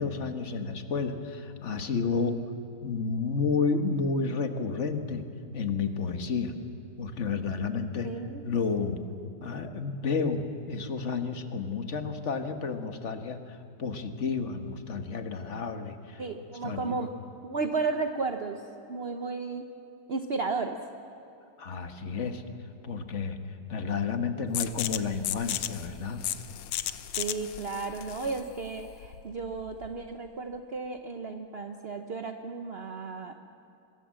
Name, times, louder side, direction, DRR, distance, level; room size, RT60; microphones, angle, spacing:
voice 1, 0.0-2.4 2.8-5.2 5.5-6.5 7.0-8.1 8.4-9.0 9.4-16.2 16.6-17.0 21.6-22.4 22.8-23.4 23.7-26.2, left 5 dB, 40° left, 7 dB, 1.3 m, -31 dB
voice 2, 8.0-8.4 16.2-17.1 17.4-18.6 18.9-19.7 20.1-20.8 27.2-33.3, right 4 dB, 65° right, 6 dB, 0.6 m, -33 dB
sound 1, 24.5-30.0, left 12 dB, 75° left, 1.6 m, -35 dB
24.0 x 22.0 x 7.6 m, 2.7 s
omnidirectional pair, 2.4 m